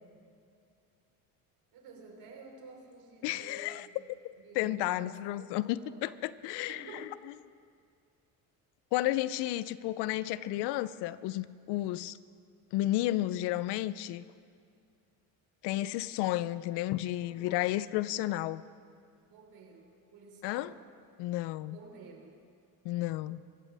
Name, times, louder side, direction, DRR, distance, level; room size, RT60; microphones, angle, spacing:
voice 1, 1.7-4.1 4.4-6.1 6.7-7.2 17.2-17.8 19.3-20.9 21.7-22.4, right 4 dB, 60° right, 1 dB, 3.9 m, -51 dB
voice 2, 3.2-3.9 4.6-6.8 8.9-12.2 12.7-14.2 15.6-18.6 20.4-20.7 21.2-21.8 22.8-23.4, left 15 dB, 80° left, 17 dB, 0.6 m, -32 dB
23.5 x 14.5 x 3.5 m, 2.3 s
supercardioid pair, 90°, 40 cm